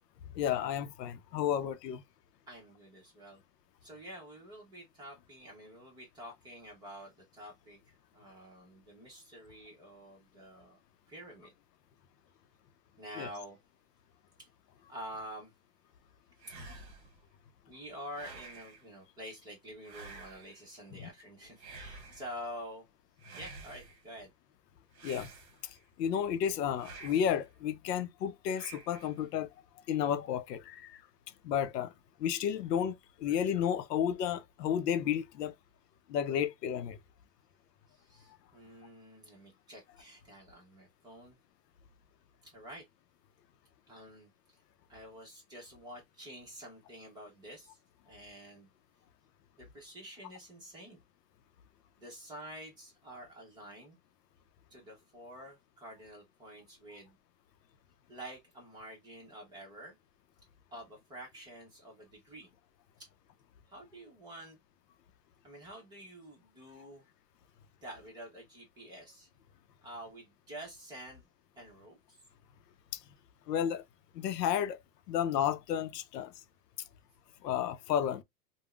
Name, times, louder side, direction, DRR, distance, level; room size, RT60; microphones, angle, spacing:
voice 1, 0.4-2.0 13.2-13.3 25.0-25.3 26.0-29.5 29.9-31.0 31.4-31.9 32.2-35.5 36.1-37.0 73.5-73.8 74.1-74.8 75.1-76.3 77.4-78.2, left 9 dB, 85° left, 0.6 m, -32 dB
voice 2, 2.5-3.4 3.8-10.8 11.1-11.5 13.0-13.6 14.4-14.5 14.9-15.5 16.5-16.6 17.7-22.9 23.4-24.3 37.9-41.4 42.4-42.8 43.9-44.6 44.9-47.8 48.0-48.7 49.6-51.0 52.0-54.0 54.7-57.2 58.1-60.0 60.7-62.5 63.0-63.1 63.7-64.6 65.4-67.1 67.8-69.3 69.8-71.3 71.6-72.2, equal, 10° right, 0.8 m, -48 dB
sound 1, 16.4-17.2 18.1-18.9 19.8-20.6 21.6-22.4 23.2-24.0 24.9-25.8 26.8-27.4 28.5-29.2, right 3 dB, 45° right, 1.0 m, -50 dB
3.4 x 2.2 x 2.2 m
supercardioid pair, 160°, 47 cm